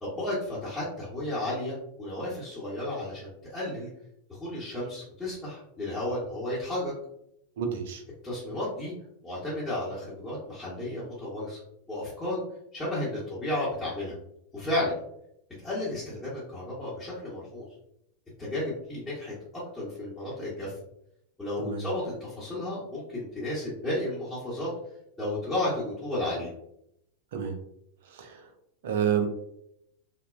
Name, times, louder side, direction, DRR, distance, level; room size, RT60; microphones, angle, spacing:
voice 1, 0.0-3.9 4.3-6.9 8.2-8.9 9.2-11.6 11.9-12.4 12.7-14.1 14.5-14.9 15.6-17.7 18.4-19.3 19.7-20.7 21.4-24.7 25.2-26.5, left 1 dB, 10° left, -10 dB, 0.9 m, -33 dB
voice 2, 7.6-8.0 21.6-21.8 27.3-27.6 28.1-28.5 28.8-29.3, right 8 dB, 55° right, 5 dB, 0.4 m, -29 dB
2.9 x 2.1 x 2.3 m, 0.77 s
figure-of-eight pair, 90°, 0 cm